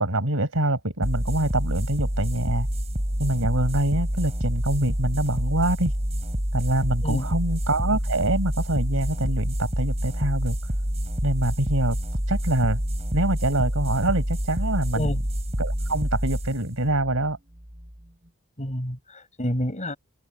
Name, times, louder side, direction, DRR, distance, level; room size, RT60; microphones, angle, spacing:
voice 1, 0.0-2.7 3.2-5.9 6.5-10.6 11.2-12.0 12.3-12.8 13.1-15.2 15.6-17.4, right 1 dB, 65° right, 5.7 m, -25 dB
sound 1, 1.0-18.1, equal, 30° right, 4.0 m, -27 dB
voice 2, 18.6-20.0, equal, 35° left, 7.2 m, -29 dB
open air
head